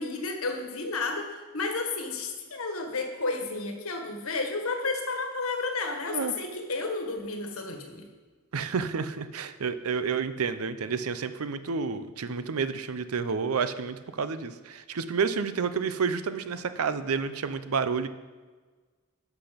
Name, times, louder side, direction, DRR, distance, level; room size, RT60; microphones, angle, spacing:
voice 1, 0.0-8.1, left 3 dB, 80° left, 4 dB, 1.4 m, -32 dB
voice 2, 8.5-18.1, right 5 dB, 90° right, 12 dB, 0.6 m, -30 dB
11.5 x 6.0 x 5.1 m, 1.4 s
head